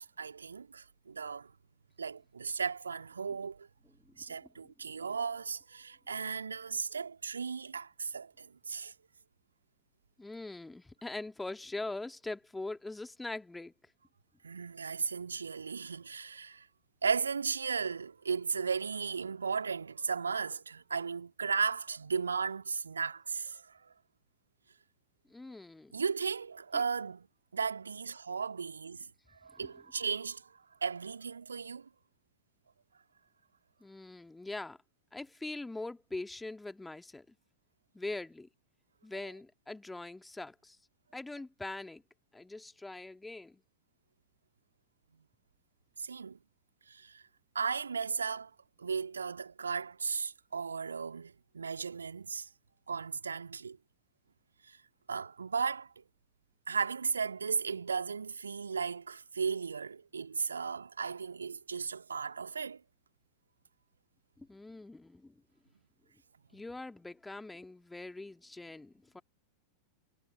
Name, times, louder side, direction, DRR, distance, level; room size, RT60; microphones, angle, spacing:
voice 1, 0.0-1.5 2.0-3.7 4.2-8.9 14.4-16.7 17.0-23.9 25.9-27.3 27.5-29.1 29.4-31.9 46.0-46.4 46.9-47.2 47.5-48.5 48.8-52.5 52.9-53.8 54.7-54.8 55.1-56.0 56.7-62.8, right 5 dB, 75° right, 2.4 m, -36 dB
voice 2, 4.1-4.5 10.2-13.7 25.3-25.9 26.7-26.8 29.6-29.7 33.8-34.8 35.1-37.3 37.9-38.5 39.0-40.8 41.1-42.0 42.3-43.6 64.4-65.4 66.5-69.2, left 2 dB, 5° left, 2.1 m, -42 dB
figure-of-eight pair, 90°, 0 cm